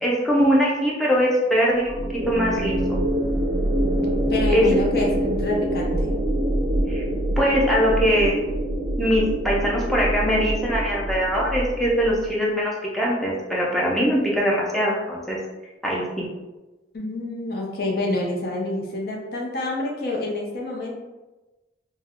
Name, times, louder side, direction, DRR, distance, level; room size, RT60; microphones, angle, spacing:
voice 1, 0.0-2.0 2.2-2.8 4.5-4.7 6.9-7.0 7.4-8.5 9.0-15.4 15.8-16.3, equal, ahead, -5 dB, 0.5 m, -22 dB
sound 1, 1.8-12.3, right 1 dB, 60° right, 0.4 m, -25 dB
voice 2, 4.3-6.1 16.9-20.9, left 2 dB, 55° left, -1 dB, 0.5 m, -27 dB
2.3 x 2.1 x 3.5 m, 1.1 s
head